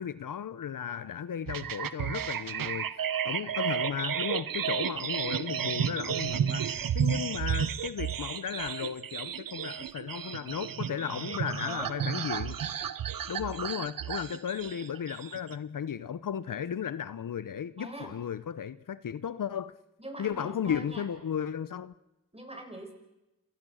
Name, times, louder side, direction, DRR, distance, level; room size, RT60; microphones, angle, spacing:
voice 1, 0.0-2.9 3.2-12.6 13.3-19.7 20.2-21.9, left 8 dB, 70° left, 0.9 m, -35 dB
sound 1, 1.5-15.5, right 8 dB, 80° right, 1.0 m, -32 dB
voice 2, 10.9-12.4 17.8-18.1 20.0-21.1 22.3-22.9, right 1 dB, 20° right, 7.3 m, -43 dB
29.0 x 23.5 x 6.4 m
cardioid pair, 50°, 33 cm